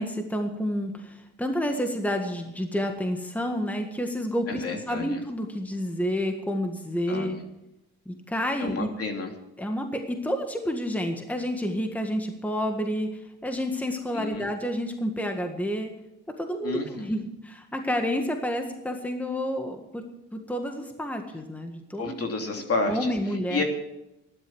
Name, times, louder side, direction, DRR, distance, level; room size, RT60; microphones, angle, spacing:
voice 1, 0.0-7.4 8.1-8.9 9.6-15.9 16.4-20.0 20.3-22.1 22.9-23.6, equal, 5° left, 4 dB, 1.7 m, -29 dB
voice 2, 4.5-5.2 7.1-7.4 8.6-9.3 14.1-14.5 16.6-17.1 22.0-23.6, left 3 dB, 50° left, 3 dB, 3.1 m, -31 dB
13.0 x 11.5 x 6.3 m, 0.91 s
cardioid pair, 90°, 30 cm